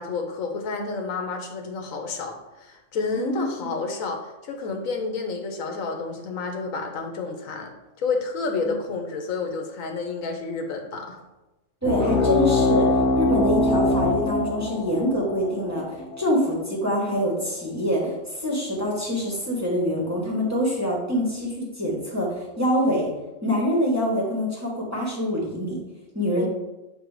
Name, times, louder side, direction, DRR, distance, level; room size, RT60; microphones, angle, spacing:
voice 1, 0.0-2.3 2.6-7.7 8.0-11.2 26.3-26.5, left 4 dB, 85° left, 3 dB, 1.3 m, -30 dB
sound 1, 11.8-16.9, left 2 dB, 70° left, 0.9 m, -23 dB
voice 2, 11.8-23.1 23.4-25.8 26.1-26.5, equal, 15° right, -4 dB, 1.3 m, -25 dB
7.5 x 3.0 x 4.8 m, 1.0 s
omnidirectional pair, 1.4 m